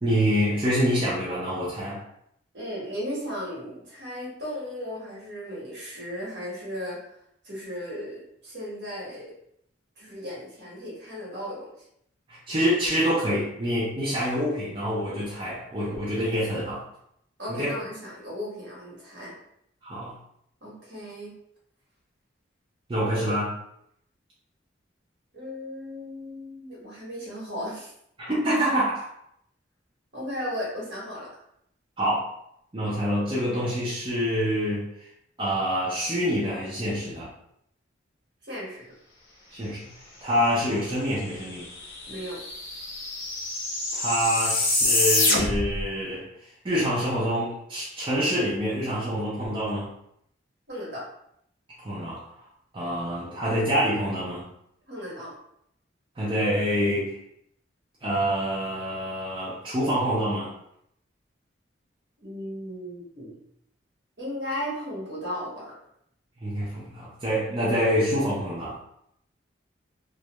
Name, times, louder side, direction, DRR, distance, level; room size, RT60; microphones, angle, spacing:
voice 1, 0.0-2.0 12.3-16.8 17.5-17.7 19.8-20.1 22.9-23.6 28.2-29.1 32.0-32.3 32.7-34.9 35.4-37.3 39.5-39.8 40.2-41.6 43.9-46.3 46.6-49.9 51.8-52.2 52.7-54.4 56.2-57.1 58.0-60.5 66.4-68.8, equal, 25° right, -8 dB, 0.5 m, -26 dB
voice 2, 2.5-7.0 7.4-9.3 10.0-11.7 17.4-19.3 20.6-21.3 25.3-27.9 30.1-31.3 38.5-38.8 42.1-42.4 50.7-51.1 54.9-55.3 62.2-63.3 64.2-65.6, equal, 60° right, -5 dB, 1.2 m, -35 dB
sound 1, 41.3-41.4 41.6-45.8, left 2 dB, 85° left, 0.7 m, -26 dB
2.3 x 2.1 x 2.9 m, 0.73 s
head